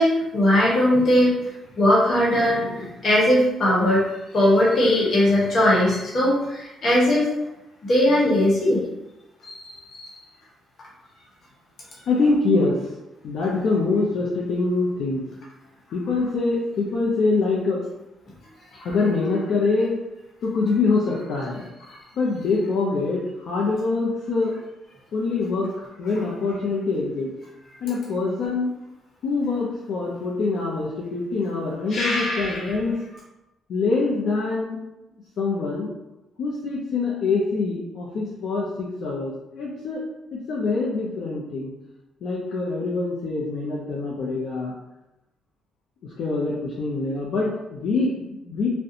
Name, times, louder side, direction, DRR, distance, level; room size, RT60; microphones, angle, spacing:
voice 1, 0.0-1.3 1.8-4.0 4.3-7.3 7.8-8.8 9.4-10.2 31.9-32.7, left 1 dB, 55° left, -5 dB, 1.0 m, -20 dB
voice 2, 12.1-12.8 13.2-15.2 15.9-17.8 18.7-20.0 20.4-24.6 25.1-27.3 27.8-28.7 29.2-33.0 33.7-34.8 35.4-35.9 36.4-40.0 40.3-41.7 42.2-44.7 46.0-48.7, left 3 dB, 70° left, -5 dB, 0.5 m, -24 dB
2.4 x 2.1 x 2.7 m, 0.93 s
cardioid pair, 90°, 0 cm